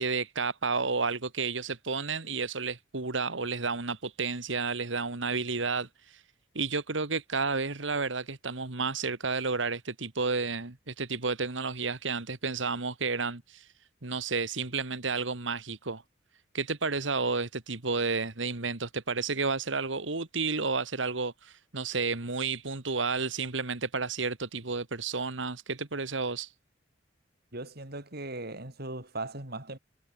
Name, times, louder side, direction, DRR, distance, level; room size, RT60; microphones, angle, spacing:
voice 1, 0.0-6.2 6.6-13.7 14.0-16.0 16.5-26.5, right 4 dB, 85° right, 2.0 m, -31 dB
voice 2, 27.5-29.8, right 2 dB, 55° right, 5.1 m, -38 dB
head